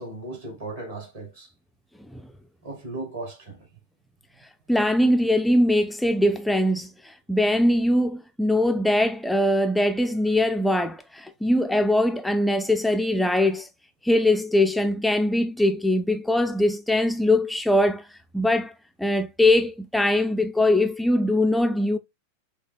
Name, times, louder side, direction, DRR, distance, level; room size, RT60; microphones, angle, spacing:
voice 1, 0.0-1.5 2.6-3.7, right 2 dB, 60° right, 2.4 m, -36 dB
voice 2, 4.7-13.7 14.0-18.0 18.3-18.7 19.0-22.0, left 1 dB, 5° left, 0.3 m, -22 dB
6.0 x 2.3 x 2.4 m
figure-of-eight pair, 90°, 0 cm